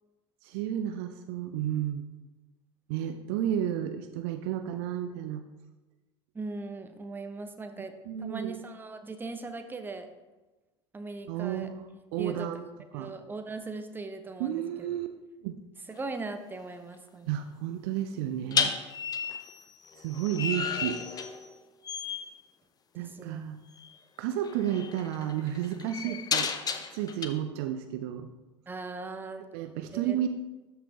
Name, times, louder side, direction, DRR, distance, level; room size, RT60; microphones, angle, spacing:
voice 1, 0.4-2.0 2.9-5.4 8.1-8.6 11.3-12.6 12.9-13.1 14.4-15.1 15.4-15.6 17.3-18.7 20.0-21.0 23.0-23.6 24.2-26.5 26.9-28.3 29.5-30.3, right 11 dB, 55° right, 9 dB, 0.5 m, -32 dB
voice 2, 6.3-7.9 8.2-10.1 10.9-11.7 12.2-12.5 12.9-14.6 15.9-17.3 22.9-23.4 26.0-26.2 28.7-29.5 29.9-30.2, right 3 dB, 15° right, 7 dB, 0.8 m, -39 dB
sound 1, 15.9-16.2 18.5-21.6 21.8-22.3 23.8-23.9 24.4-27.3, left 6 dB, 25° left, 0.7 m, -33 dB
13.0 x 5.6 x 2.9 m, 1.1 s
figure-of-eight pair, 75°, 15 cm